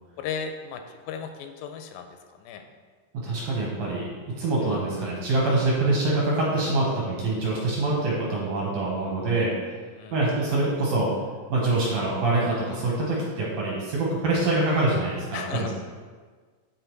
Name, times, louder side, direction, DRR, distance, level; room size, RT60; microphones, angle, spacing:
voice 1, 0.2-0.8 1.1-2.1 2.5-2.6 4.7-4.8 10.0-10.2 15.3-15.7, left 6 dB, 85° left, 6 dB, 2.2 m, -35 dB
voice 2, 3.1-4.1 4.4-9.5 10.1-11.1 11.5-15.7, right 2 dB, 65° right, -5 dB, 2.0 m, -25 dB
8.1 x 3.6 x 4.6 m, 1.5 s
omnidirectional pair, 4.1 m